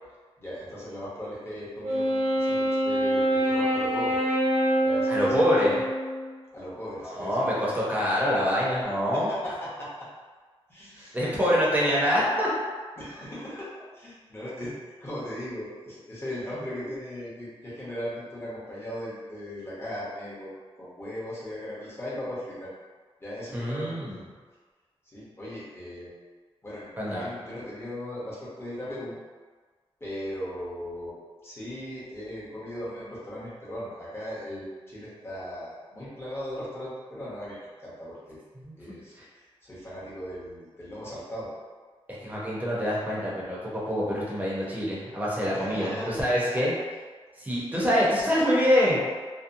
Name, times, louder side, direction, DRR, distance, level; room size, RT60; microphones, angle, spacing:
voice 1, 0.4-4.2 4.8-5.5 6.5-7.5 9.1-10.1 10.7-11.6 13.0-20.5 20.8-22.7 23.2-24.2 25.0-26.1 26.6-29.2 30.0-31.1 31.4-38.4 38.8-41.5 45.5-46.2 46.5-46.6, equal, 25° left, -8 dB, 0.9 m, -38 dB
Wind instrument woodwind instrument, 1.8-6.4, equal, 85° right, 0.8 m, -25 dB
voice 2, 5.1-5.8 7.0-9.3 11.0-12.5 23.5-24.2 27.0-27.3 38.7-38.8 42.2-43.6 43.9-46.7 47.4-49.0, equal, 15° right, -6 dB, 0.7 m, -25 dB
2.8 x 2.1 x 2.6 m, 1.5 s
wide cardioid pair, 125°, 10 cm